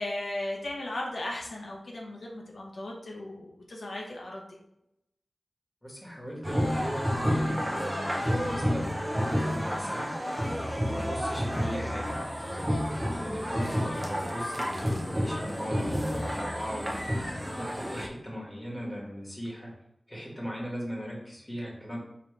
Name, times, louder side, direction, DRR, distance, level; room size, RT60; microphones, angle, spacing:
voice 1, 0.0-4.6, left 1 dB, 80° left, -1 dB, 0.8 m, -36 dB
voice 2, 5.8-10.1 10.8-12.8 13.2-17.2 17.5-19.7 20.1-22.0, equal, 15° left, -4 dB, 1.6 m, -38 dB
sound 1, 6.4-18.1, equal, 10° right, 0.8 m, -30 dB
5.1 x 3.0 x 3.2 m, 0.82 s
wide cardioid pair, 85°, 0 cm